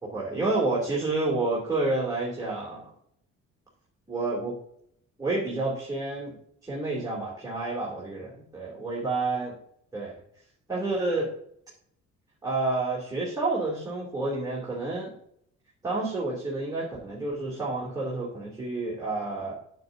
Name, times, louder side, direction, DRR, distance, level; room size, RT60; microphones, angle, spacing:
voice 1, 0.0-2.9 4.1-4.6 5.2-6.4 6.6-9.5 9.9-10.1 10.7-11.3 12.4-15.1 15.8-19.5, right 2 dB, 10° right, -6 dB, 2.8 m, -29 dB
9.2 x 8.4 x 2.7 m, 0.69 s
cardioid pair, 90°, 30 cm